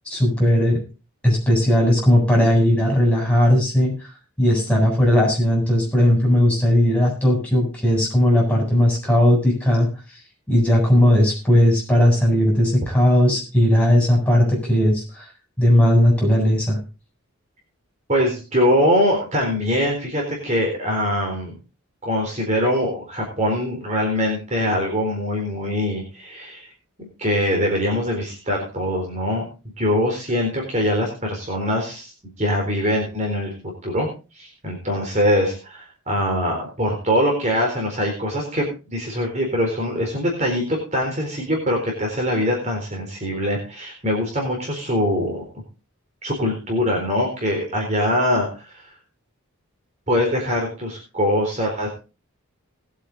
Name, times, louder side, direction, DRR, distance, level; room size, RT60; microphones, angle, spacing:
voice 1, 0.1-0.8 1.2-3.9 4.4-9.9 10.5-15.2 15.6-16.8, left 1 dB, 5° left, -3 dB, 7.9 m, -17 dB
voice 2, 18.1-21.5 22.0-26.7 27.0-29.5 29.8-33.5 33.8-34.1 34.3-45.4 46.2-48.8 50.1-51.9, equal, 30° right, 0 dB, 4.1 m, -23 dB
20.0 x 8.5 x 4.0 m, 0.33 s
head